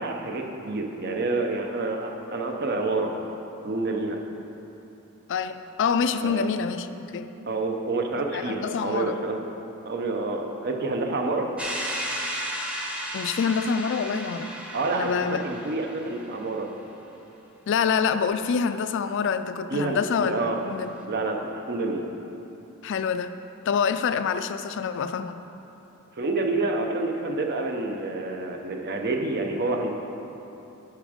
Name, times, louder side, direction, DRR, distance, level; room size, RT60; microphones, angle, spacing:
voice 1, 0.0-3.1 3.6-4.2 6.2-6.5 7.5-9.4 9.9-11.5 14.7-16.7 19.7-20.6 21.1-22.0 26.2-29.9, right 2 dB, 50° right, 2 dB, 0.7 m, -28 dB
voice 2, 5.3-7.3 8.3-9.2 13.1-14.5 14.9-15.4 17.7-20.9 22.8-23.3 23.7-25.4, left 6 dB, 60° left, 11 dB, 0.4 m, -26 dB
sound 1, 11.6-16.4, equal, 5° right, 0.8 m, -34 dB
8.8 x 6.0 x 5.0 m, 3.0 s
head